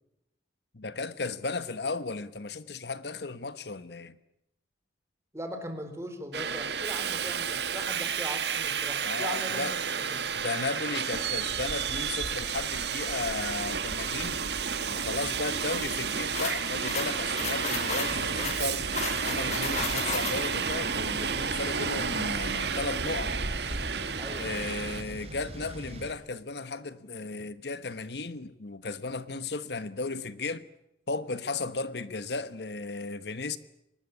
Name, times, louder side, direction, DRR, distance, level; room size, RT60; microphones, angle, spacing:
voice 1, 0.7-4.2 9.0-9.7 10.4-14.5 14.9-18.9 19.3-23.4 24.4-30.6 31.1-33.6, left 3 dB, 65° left, 1.2 m, -35 dB
voice 2, 5.3-10.2 24.2-24.5, right 1 dB, 15° right, 4.1 m, -40 dB
Subway metro underground, 6.3-25.0, right 6 dB, 70° right, 1.8 m, -31 dB
sound 1, 16.3-20.7, left 4 dB, 40° left, 6.0 m, -34 dB
sound 2, 18.0-26.1, right 1 dB, 35° right, 4.3 m, -42 dB
24.5 x 20.5 x 9.8 m
head